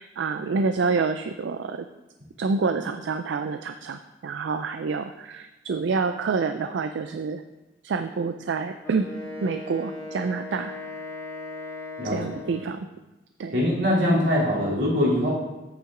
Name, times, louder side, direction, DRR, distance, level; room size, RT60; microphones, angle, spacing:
voice 1, 0.0-1.9 2.4-7.4 7.8-9.1 9.4-10.7 12.0-12.9 13.4-13.6, right 4 dB, 85° right, 9 dB, 0.4 m, -27 dB
Wind instrument woodwind instrument, 8.8-12.8, left 2 dB, 15° left, 2.3 m, -38 dB
voice 2, 13.5-15.3, left 1 dB, 70° right, -5 dB, 3.0 m, -22 dB
8.4 x 7.4 x 3.7 m, 1.1 s
head